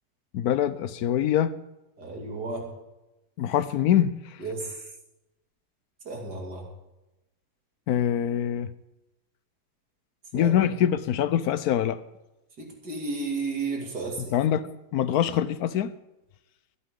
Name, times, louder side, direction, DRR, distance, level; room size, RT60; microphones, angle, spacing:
voice 1, 0.3-1.6 3.4-4.4 7.9-8.7 10.3-12.0 14.3-15.9, left 10 dB, 75° left, 15 dB, 1.1 m, -24 dB
voice 2, 2.0-2.7 4.4-4.7 6.0-6.7 10.3-10.6 12.6-14.4, right 3 dB, 80° right, 1 dB, 3.2 m, -33 dB
23.5 x 8.4 x 3.8 m, 0.96 s
omnidirectional pair, 1.7 m